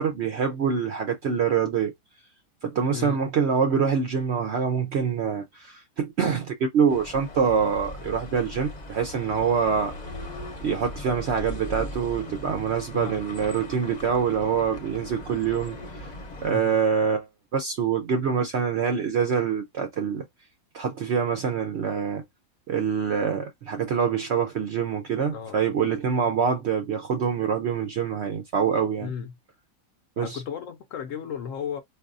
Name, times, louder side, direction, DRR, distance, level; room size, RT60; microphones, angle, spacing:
voice 1, 0.0-1.9 2.6-9.9 10.6-16.1 16.4-17.3 17.5-20.2 20.7-22.2 22.7-29.1 30.2-30.4, right 6 dB, 65° right, 0.7 m, -25 dB
sound 1, 6.9-16.5, left 1 dB, 35° left, 0.7 m, -39 dB
voice 2, 29.0-29.4 30.2-31.8, left 7 dB, 65° left, 0.9 m, -34 dB
4.5 x 2.6 x 2.5 m
omnidirectional pair, 1.6 m